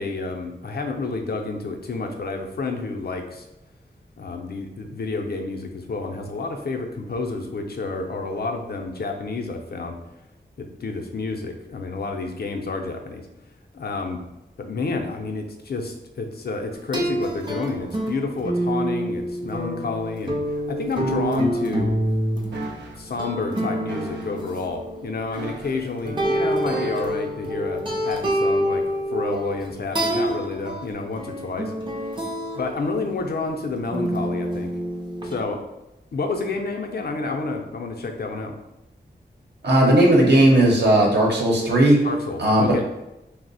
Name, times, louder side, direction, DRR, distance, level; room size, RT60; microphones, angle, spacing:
voice 1, 0.0-3.4 4.2-10.0 10.6-13.2 13.7-14.2 14.6-21.9 23.0-28.8 29.1-31.7 32.5-34.7 35.2-35.6 36.1-38.5 42.0-42.8, left 3 dB, 65° left, 3 dB, 0.5 m, -29 dB
sound 1, 16.9-25.4 26.0-32.8 33.8-35.4, right 1 dB, 25° right, 0.5 m, -27 dB
sound 2, 22.5-23.0 23.9-24.4 25.3-26.0 26.7-27.3 28.0-28.2, right 2 dB, 90° right, 0.5 m, -37 dB
voice 2, 39.6-42.0 42.4-42.7, right 1 dB, 70° right, -2 dB, 0.8 m, -16 dB
2.8 x 2.0 x 4.0 m, 0.95 s
wide cardioid pair, 70°, 18 cm